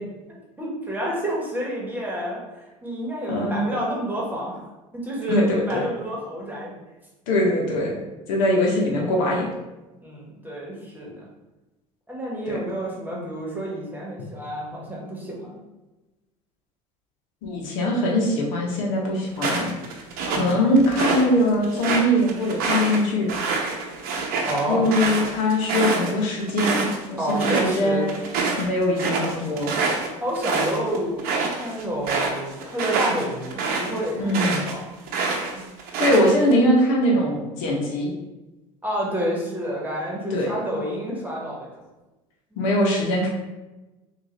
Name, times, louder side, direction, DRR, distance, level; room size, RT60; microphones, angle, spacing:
voice 1, 0.6-6.7 10.0-11.3 12.1-15.5 20.3-20.6 24.5-24.9 27.2-28.1 30.2-35.3 35.5-35.6 38.8-41.7 42.5-42.6, equal, 10° right, -4 dB, 1.3 m, -29 dB
voice 2, 3.3-3.6 5.3-5.9 7.3-8.0 8.3-9.5 12.5-12.6 17.4-19.7 20.3-23.3 24.7-28.2 28.6-29.8 34.2-34.6 36.0-38.1 40.3-40.5 42.6-43.3, left 1 dB, 75° left, -1 dB, 0.8 m, -22 dB
sound 1, 19.4-21.2 21.6-27.0 27.3-27.8 28.1-34.7 35.1-36.5, right 4 dB, 60° right, 0.7 m, -26 dB
3.6 x 2.4 x 3.1 m, 1.1 s
hypercardioid pair, 80°, 17 cm